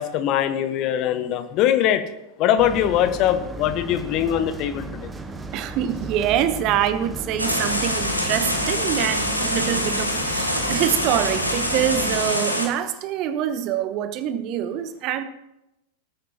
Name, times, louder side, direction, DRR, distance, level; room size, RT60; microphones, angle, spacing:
voice 1, 0.0-2.0 2.4-5.1, left 10 dB, 40° left, 1.0 m, -22 dB
sound 1, 2.6-12.3, right 2 dB, 15° right, 1.0 m, -35 dB
voice 2, 5.5-15.2, right 10 dB, 40° right, 0.9 m, -25 dB
sound 2, 7.4-12.7, equal, 90° left, 1.5 m, -25 dB
19.0 x 9.2 x 2.9 m
figure-of-eight pair, 90°, 0 cm